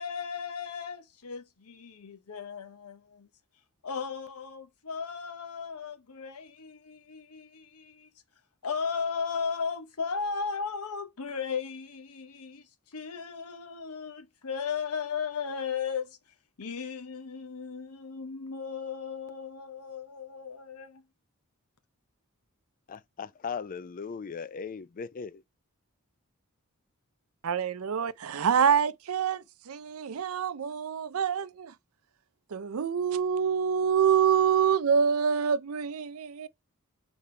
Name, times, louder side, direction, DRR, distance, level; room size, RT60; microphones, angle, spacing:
voice 1, 0.0-3.3 3.8-8.1 8.6-21.0, left 6 dB, 90° left, 0.9 m, -36 dB
voice 2, 22.9-25.4, left 6 dB, 40° left, 0.4 m, -38 dB
voice 3, 27.4-31.7 32.5-36.5, right 7 dB, 70° right, 0.5 m, -26 dB
6.8 x 4.3 x 3.2 m
head